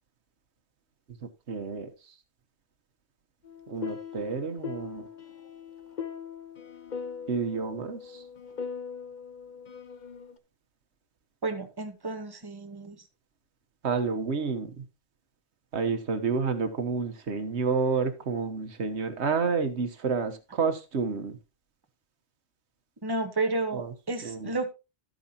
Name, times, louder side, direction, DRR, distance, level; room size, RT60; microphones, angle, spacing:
voice 1, 1.5-2.1 3.7-5.1 7.3-8.2 13.8-14.8 15.7-21.4 23.7-23.9 24.2-24.5, right 5 dB, 80° right, 1.4 m, -29 dB
sound 1, 3.4-10.4, left 6 dB, 45° left, 1.0 m, -40 dB
voice 2, 11.4-13.0 23.0-24.7, right 2 dB, 20° right, 1.3 m, -31 dB
12.0 x 9.3 x 2.9 m
omnidirectional pair, 1.1 m